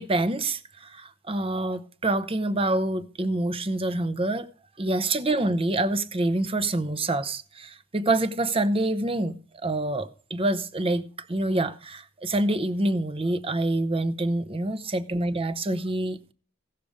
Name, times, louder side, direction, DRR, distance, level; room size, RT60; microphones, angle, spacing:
voice 1, 0.0-4.5 4.8-11.0 11.3-16.3, right 2 dB, 25° right, 0.7 m, -26 dB
16.0 x 6.8 x 5.0 m
head